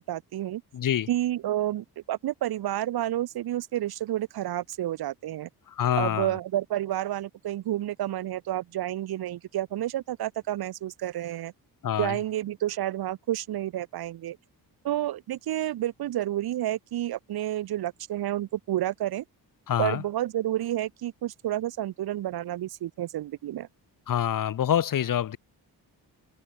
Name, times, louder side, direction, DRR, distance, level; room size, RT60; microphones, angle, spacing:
voice 1, 0.0-0.6 1.1-5.5 6.0-11.5 12.0-14.4 14.8-19.2 19.8-23.7, right 13 dB, 65° right, 1.1 m, -30 dB
voice 2, 0.7-1.1 5.7-6.3 11.8-12.2 19.7-20.0 24.1-25.4, left 10 dB, 55° left, 1.9 m, -26 dB
wide cardioid pair, 165°, 39 cm